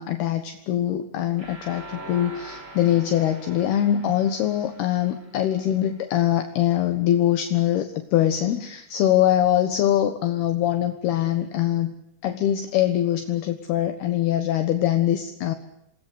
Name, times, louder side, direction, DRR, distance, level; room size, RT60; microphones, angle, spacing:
voice 1, 0.0-11.9 12.2-15.5, left 11 dB, 70° left, 8 dB, 3.2 m, -23 dB
sound 1, 1.4-6.3, right 2 dB, 30° right, 7.0 m, -44 dB
28.0 x 20.5 x 8.3 m, 0.83 s
omnidirectional pair, 5.1 m